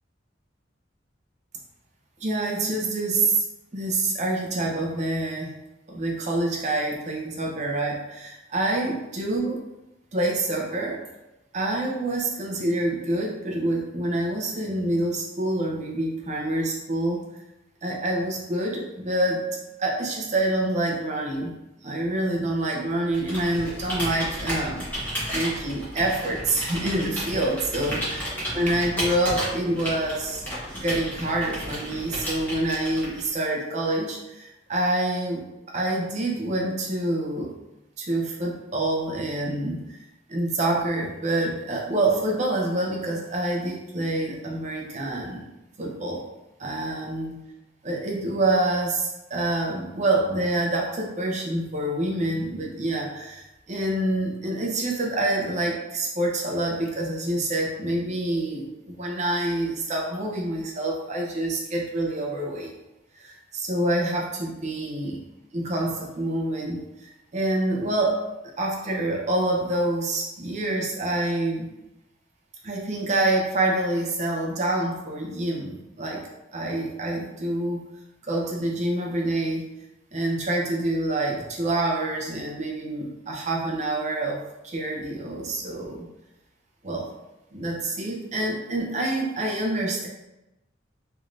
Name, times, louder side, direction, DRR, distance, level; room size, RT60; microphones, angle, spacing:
voice 1, 2.2-3.4 3.7-5.5 5.9-9.6 10.1-11.0 11.5-17.2 17.8-19.4 19.8-21.5 21.8-24.8 25.3-28.0 28.5-30.4 30.7-37.5 38.0-39.8 40.3-45.5 45.8-46.2 46.6-47.4 47.8-62.7 63.2-65.2 65.5-68.2 68.6-71.7 72.6-76.2 76.5-77.8 78.2-79.7 80.1-84.4 84.6-86.1 86.8-87.1 87.5-90.1, right 1 dB, 40° right, -1 dB, 0.6 m, -27 dB
Computer keyboard, 23.1-33.4, equal, 10° left, 1.2 m, -32 dB
3.4 x 3.1 x 2.5 m, 0.96 s
head